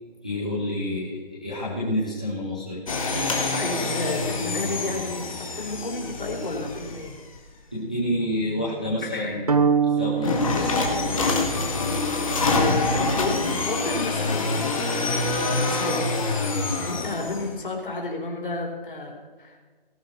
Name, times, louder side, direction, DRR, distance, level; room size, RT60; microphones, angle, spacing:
voice 1, 0.2-2.8 7.7-11.2, left 1 dB, 10° left, -9 dB, 0.6 m, -29 dB
sound 1, 2.9-7.4 10.2-17.5, left 3 dB, 35° left, 1.9 m, -26 dB
voice 2, 3.5-5.2 5.5-7.1 9.1-9.6 12.4-16.2 16.8-19.6, left 2 dB, 60° left, 0 dB, 4.3 m, -32 dB
sound 2, 9.5-11.8, right 6 dB, 40° right, 0.7 m, -25 dB
18.5 x 11.5 x 4.3 m, 1.4 s
hypercardioid pair, 175°, 30 cm